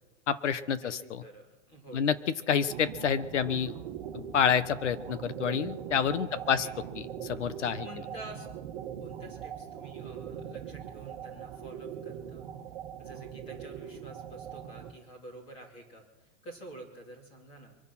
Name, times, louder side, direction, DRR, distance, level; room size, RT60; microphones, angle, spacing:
voice 1, 0.3-1.2 1.9-2.2 2.5-3.7 4.1-6.7 7.0-7.9, left 7 dB, 80° left, 14 dB, 1.3 m, -28 dB
voice 2, 0.8-2.1 6.2-6.7 7.8-8.5 9.0-12.5 13.0-17.8, right 1 dB, 15° left, 2 dB, 2.7 m, -49 dB
sound 1, 2.7-14.9, right 9 dB, 35° right, 1.6 m, -41 dB
24.0 x 9.8 x 6.0 m, 1.1 s
hypercardioid pair, 180°, 35 cm